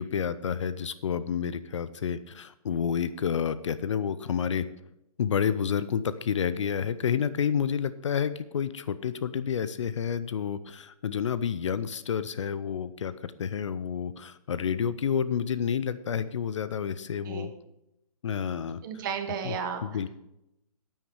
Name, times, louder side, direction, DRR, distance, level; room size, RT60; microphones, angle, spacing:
voice 1, 0.0-4.7 5.2-17.5 18.2-18.8 19.4-19.6 19.8-20.1, left 7 dB, 55° left, 14 dB, 0.6 m, -29 dB
voice 2, 18.8-19.8, right 7 dB, 35° right, 6 dB, 1.5 m, -33 dB
9.9 x 9.1 x 4.8 m, 0.86 s
figure-of-eight pair, 145°, 19 cm